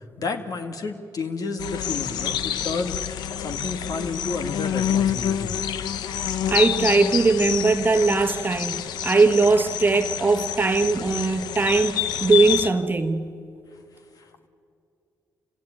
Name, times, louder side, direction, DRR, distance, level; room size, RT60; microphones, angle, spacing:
voice 1, 0.2-3.0 3.4-5.5 14.2-14.3, left 4 dB, 60° left, 2.0 m, -31 dB
sound 1, 1.6-12.7, left 9 dB, 85° left, 0.8 m, -28 dB
voice 2, 6.5-13.2, right 3 dB, 30° right, 1.3 m, -20 dB
28.0 x 17.0 x 9.1 m
cardioid pair, 65°, 7 cm